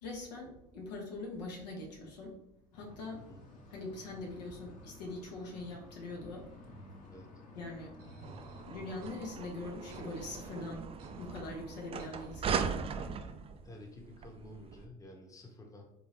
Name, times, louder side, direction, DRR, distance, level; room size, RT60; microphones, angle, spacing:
voice 1, 0.0-2.3 2.7-3.2 3.7-6.4 7.5-7.9 8.7-10.9 11.2-12.6, left 2 dB, 80° left, -1 dB, 0.9 m, -42 dB
sound 1, 2.7-10.8, left 2 dB, 40° left, 1.1 m, -54 dB
sound 2, 8.0-13.0, right 3 dB, 55° right, 0.9 m, -55 dB
sound 3, 8.2-14.9, right 6 dB, 30° right, 0.4 m, -39 dB
voice 2, 13.6-15.8, left 1 dB, 15° left, 0 dB, 0.9 m, -51 dB
4.1 x 2.6 x 3.2 m, 0.78 s
hypercardioid pair, 70°, 21 cm